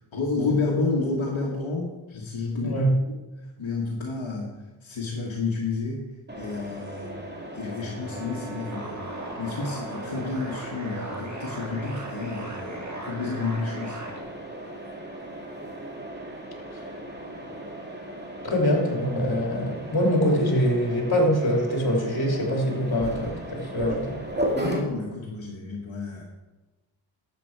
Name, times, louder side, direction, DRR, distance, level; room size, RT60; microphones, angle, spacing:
voice 1, 0.1-2.8 3.6-4.5 4.8-6.0 6.3-7.2 7.5-9.1 9.4-14.0 24.5-26.2, left 3 dB, 75° left, -2 dB, 1.6 m, -30 dB
voice 2, 2.6-3.0 16.7-16.8 18.4-24.2, equal, 50° left, 0 dB, 3.0 m, -24 dB
Mechanisms, 6.3-24.8, right 1 dB, 20° right, 2.2 m, -36 dB
sound 1, 8.1-14.2, right 1 dB, 35° right, 2.2 m, -38 dB
12.0 x 7.8 x 4.6 m, 1.1 s
wide cardioid pair, 75°, 47 cm